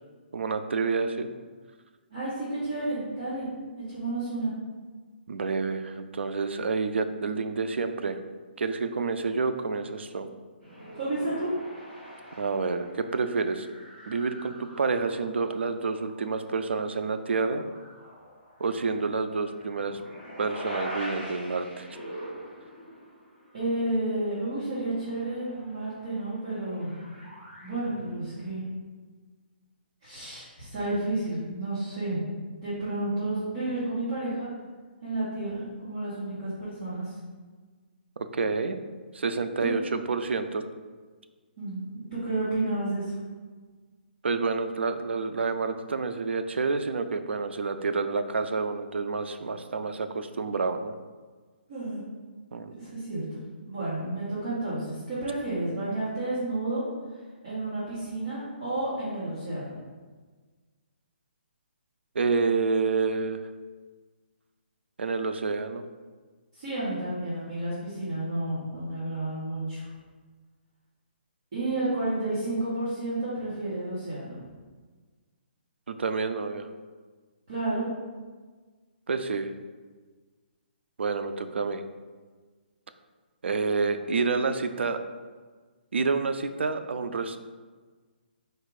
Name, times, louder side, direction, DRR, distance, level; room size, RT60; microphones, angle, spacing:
voice 1, 0.3-1.3 5.3-8.2 8.6-10.3 12.4-13.7 14.1-17.7 18.6-20.0 20.4-21.9 38.2-38.8 39.1-40.6 44.2-50.9 52.5-52.8 62.2-63.4 65.0-65.8 75.9-76.7 79.1-79.5 81.0-81.8 83.4-85.0 85.9-87.4, right 4 dB, 90° right, 9 dB, 0.4 m, -28 dB
voice 2, 2.1-3.5 3.8-4.5 10.9-11.5 23.5-26.9 27.6-28.6 30.0-32.2 32.6-34.5 35.0-37.1 39.6-39.7 41.6-43.2 51.7-52.0 52.8-53.2 53.6-56.8 57.4-59.7 66.6-69.9 71.5-74.3 77.5-77.9, right 2 dB, 30° right, -12 dB, 1.1 m, -31 dB
sound 1, 10.6-15.5 15.9-16.6 17.1-23.7 24.0-24.1 24.3-28.6, equal, ahead, 1.3 m, -44 dB
4.5 x 2.4 x 4.7 m, 1.4 s
hypercardioid pair, 180°, 6 cm